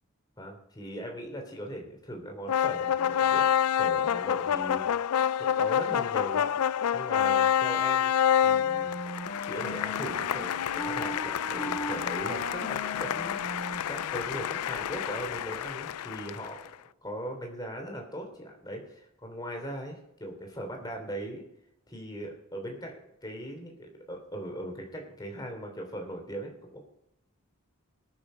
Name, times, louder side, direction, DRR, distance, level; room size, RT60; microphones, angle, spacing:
voice 1, 0.4-3.5 3.8-5.1 5.4-8.1 8.4-8.9 9.4-16.6 17.0-21.4 21.9-26.8, equal, 20° left, 2 dB, 3.1 m, -39 dB
sound 1, 2.5-16.7, left 9 dB, 90° left, 0.4 m, -28 dB
Wind instrument woodwind instrument, 8.5-14.6, left 2 dB, 55° left, 2.6 m, -38 dB
20.0 x 6.9 x 5.1 m, 0.82 s
head